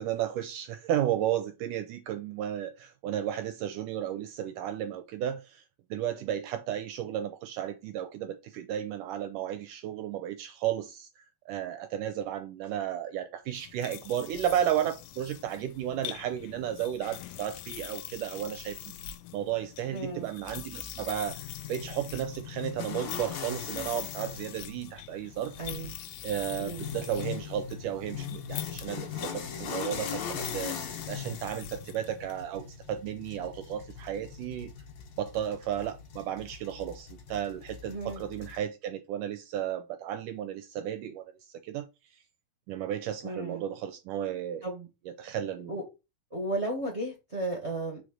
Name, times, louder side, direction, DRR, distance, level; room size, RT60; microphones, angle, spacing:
voice 1, 0.0-5.6 5.9-11.1 11.5-18.8 19.3-21.4 21.7-25.5 26.2-30.8 31.1-34.7 35.2-41.3 41.6-41.9 42.7-44.6 45.1-45.8, right 10 dB, 75° right, 2.1 m, -33 dB
sound 1, 13.5-32.4, left 12 dB, 85° left, 2.3 m, -44 dB
voice 2, 19.9-20.3 25.6-25.9 26.6-26.9 37.9-38.2 43.2-43.6 44.6-44.9 45.7-45.8 46.3-48.0, right 1 dB, 25° right, 1.5 m, -34 dB
sound 2, 21.3-38.6, left 7 dB, 60° left, 2.3 m, -40 dB
5.0 x 5.0 x 6.2 m
omnidirectional pair, 4.1 m